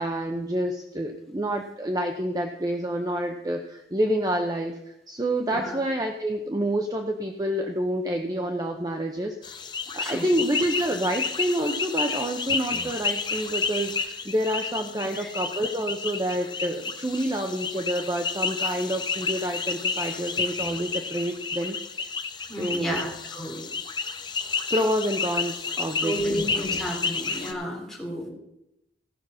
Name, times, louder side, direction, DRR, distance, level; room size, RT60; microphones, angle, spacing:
voice 1, 0.0-9.3 9.9-22.1 22.6-23.0 24.7-26.4, right 1 dB, 20° right, 3 dB, 0.7 m, -28 dB
voice 2, 5.5-5.8 10.0-10.3 15.2-15.3 22.5-23.6 26.0-28.3, equal, 5° left, -3 dB, 3.1 m, -31 dB
sound 1, 9.4-27.5, left 5 dB, 25° left, 0.7 m, -31 dB
15.5 x 5.9 x 6.3 m, 0.86 s
head